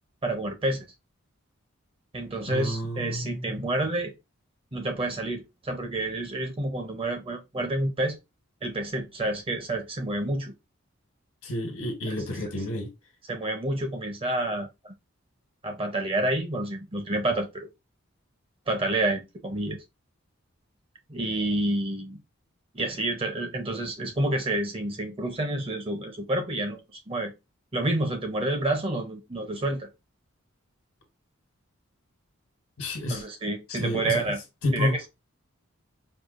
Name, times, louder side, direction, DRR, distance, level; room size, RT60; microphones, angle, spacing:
voice 1, 0.2-0.9 2.1-4.1 4.7-8.2 8.6-10.5 12.1-12.2 13.3-14.9 15.6-17.7 18.7-19.8 21.1-22.2 22.7-26.8 27.1-27.3 27.7-29.9 33.1-34.4 34.7-35.0, right 1 dB, 25° right, 0.6 m, -29 dB
voice 2, 2.5-3.7 11.4-12.9 32.8-33.2 33.7-34.3 34.6-34.9, left 1 dB, 80° left, 1.2 m, -30 dB
4.6 x 2.2 x 2.4 m
head